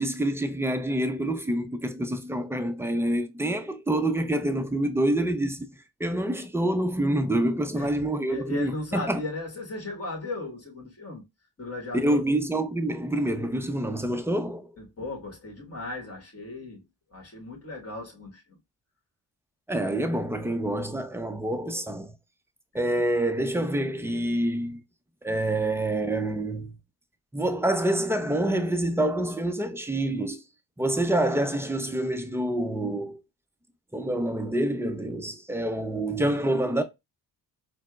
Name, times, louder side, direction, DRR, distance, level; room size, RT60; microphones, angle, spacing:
voice 1, 0.0-5.7 6.0-9.2 11.9-14.8 19.7-22.1 22.7-24.8 25.2-26.8 27.3-30.4 30.8-33.2 33.9-36.8, right 1 dB, 5° right, 0.4 m, -27 dB
voice 2, 7.7-11.2 11.6-12.2 14.8-16.8 17.1-18.6, left 2 dB, 30° left, 1.4 m, -37 dB
4.2 x 2.0 x 2.3 m
supercardioid pair, 65°, 45 cm